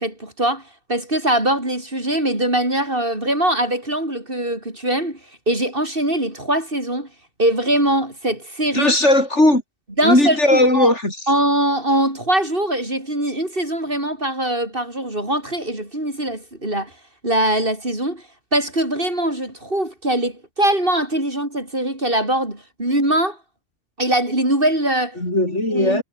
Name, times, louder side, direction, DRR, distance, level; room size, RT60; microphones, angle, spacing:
voice 1, 0.0-5.2 5.5-7.1 7.4-9.0 10.0-10.9 11.3-16.9 17.2-18.2 18.5-23.4 24.0-25.2 25.7-26.0, right 1 dB, 40° right, 6.7 m, -22 dB
voice 2, 8.7-9.6 10.0-11.2 25.2-26.0, left 1 dB, 60° left, 7.3 m, -17 dB
omnidirectional pair, 1.4 m